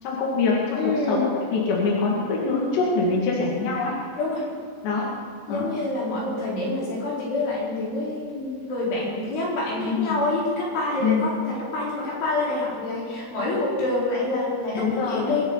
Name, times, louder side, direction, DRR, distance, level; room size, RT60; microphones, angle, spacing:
voice 1, 0.0-3.9 4.8-5.1 5.5-5.7 9.8-10.2 11.0-11.3 14.7-15.3, left 4 dB, 70° left, -4 dB, 4.2 m, -24 dB
voice 2, 0.8-1.3 4.2-4.5 5.5-15.4, left 2 dB, 90° left, -7 dB, 6.9 m, -27 dB
26.0 x 9.8 x 4.1 m, 2.1 s
omnidirectional pair, 5.3 m